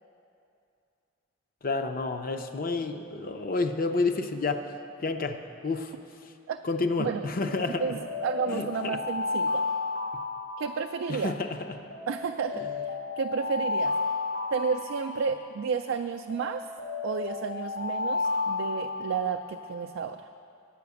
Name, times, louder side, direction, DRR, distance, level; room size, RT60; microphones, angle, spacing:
voice 1, 1.6-4.8 5.0-5.9 6.6-8.0 8.5-9.0 11.1-11.8 12.5-12.7, left 3 dB, 45° left, 6 dB, 0.5 m, -30 dB
Alarm, 7.5-11.2 11.9-15.6 16.3-19.5, left 4 dB, 80° left, 2.2 m, -32 dB
voice 2, 7.8-9.7 10.6-11.3 12.1-14.0 14.5-16.7 17.0-20.3, right 6 dB, 70° right, 6 dB, 0.3 m, -31 dB
9.3 x 5.8 x 8.2 m, 2.6 s
head